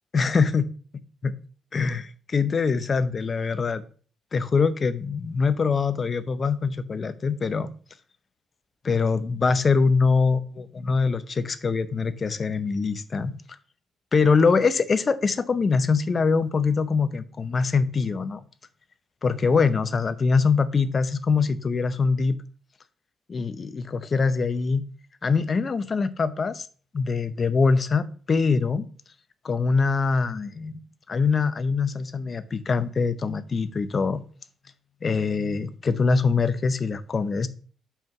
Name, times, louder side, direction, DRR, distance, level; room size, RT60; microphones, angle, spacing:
voice 1, 0.1-0.6 1.2-1.3 1.7-3.8 4.3-7.7 8.8-13.3 14.1-18.4 19.2-22.4 23.3-24.8 25.2-26.7 26.9-28.9 29.4-30.7 31.1-34.2 35.0-37.5, left 4 dB, 40° left, 0.7 m, -23 dB
5.6 x 4.6 x 5.9 m
cardioid pair, 90°, 0 cm